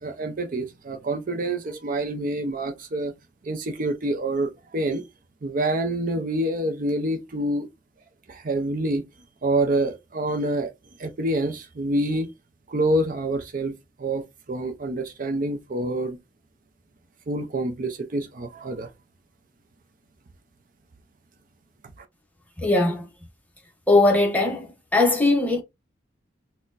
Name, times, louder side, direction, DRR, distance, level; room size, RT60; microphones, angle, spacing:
voice 1, 0.0-3.1 3.4-5.0 5.4-7.7 8.3-9.0 9.4-10.7 11.0-12.3 12.7-16.2 17.3-18.9, right 1 dB, 45° right, 0.5 m, -27 dB
voice 2, 22.6-23.1 23.9-25.6, left 2 dB, 10° left, 0.8 m, -20 dB
4.1 x 2.1 x 2.5 m
head